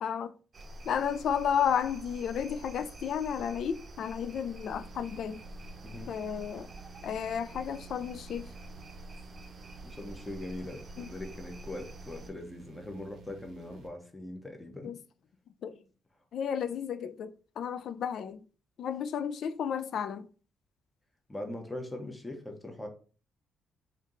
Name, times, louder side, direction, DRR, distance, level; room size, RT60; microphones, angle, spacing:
voice 1, 0.0-0.3 0.9-5.4 6.1-6.7 7.0-8.5 11.0-11.1 14.8-15.0 15.6-15.8 16.3-17.3 17.6-18.4 18.8-20.3, left 8 dB, 65° left, 0.3 m, -32 dB
sound 1, 0.5-12.3, right 1 dB, 35° right, 0.7 m, -47 dB
sound 2, 4.7-13.9, right 6 dB, 75° right, 0.7 m, -53 dB
voice 2, 9.8-14.9 21.3-22.9, left 1 dB, 10° left, 0.9 m, -41 dB
3.5 x 2.7 x 3.7 m
cardioid pair, 90°, 0 cm